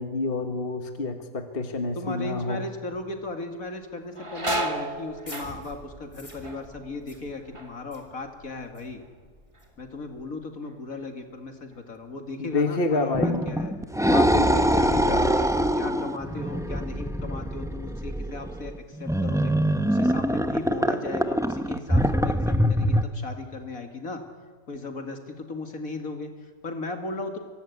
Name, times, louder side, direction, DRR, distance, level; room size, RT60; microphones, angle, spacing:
voice 1, 0.0-2.6 12.4-13.4 14.1-15.3, left 3 dB, 40° left, 6 dB, 1.8 m, -28 dB
voice 2, 1.9-9.0 9.8-13.7 14.5-19.5 19.8-24.2 24.7-27.4, left 3 dB, 75° left, 5 dB, 2.8 m, -36 dB
sound 1, 2.9-3.3 3.6-9.2 9.5-10.1 10.6-13.6 13.9-14.0 15.0-15.2 15.6-16.7 17.2-17.3 17.9-18.6 18.9-20.1, right 1 dB, 20° right, 1.7 m, -37 dB
sound 2, 4.9-10.3, equal, 20° left, 4.4 m, -48 dB
sound 3, 13.1-23.0, equal, 5° right, 0.8 m, -24 dB
24.5 x 23.0 x 9.6 m, 1.5 s
omnidirectional pair, 1.5 m